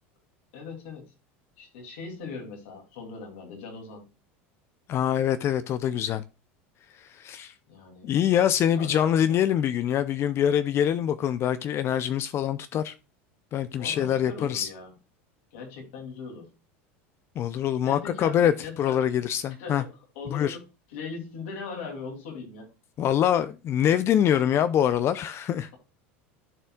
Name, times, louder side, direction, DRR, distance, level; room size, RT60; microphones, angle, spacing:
voice 1, 0.5-1.1 1.6-4.0 7.7-8.1 8.8-9.4 13.7-14.9 15.5-16.5 17.8-19.0 19.6-20.6 20.9-22.7, left 4 dB, 80° left, 2.9 m, -40 dB
voice 2, 4.9-6.2 7.0-7.5 8.0-12.9 13.5-14.7 17.4-18.5 18.8-19.8 20.3-20.6 23.0-25.7, left 10 dB, 40° left, 0.5 m, -24 dB
12.5 x 4.2 x 2.3 m
supercardioid pair, 110°, 6 cm